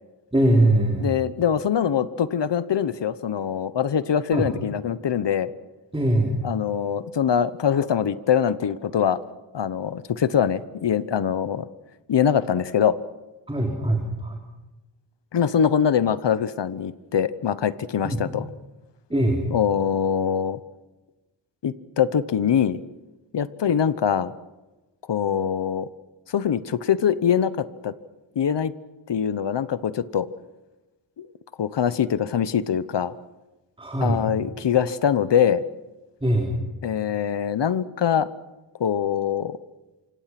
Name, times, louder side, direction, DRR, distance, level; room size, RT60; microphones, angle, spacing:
voice 1, 0.3-1.1 4.3-4.5 5.9-6.3 13.5-14.4 18.0-18.2 19.1-19.4 33.8-34.2 36.2-36.6, right 1 dB, 10° right, 1 dB, 3.5 m, -21 dB
voice 2, 1.0-5.5 6.4-9.2 9.5-11.7 12.1-12.9 15.3-18.4 19.5-20.6 21.6-22.8 23.3-24.3 25.1-25.9 26.3-27.9 28.4-28.7 29.1-30.3 31.2-31.3 31.6-33.1 34.0-35.6 36.8-38.3 38.8-39.6, left 8 dB, 70° left, 15 dB, 1.0 m, -23 dB
28.0 x 25.5 x 6.0 m, 1.1 s
wide cardioid pair, 130°, 44 cm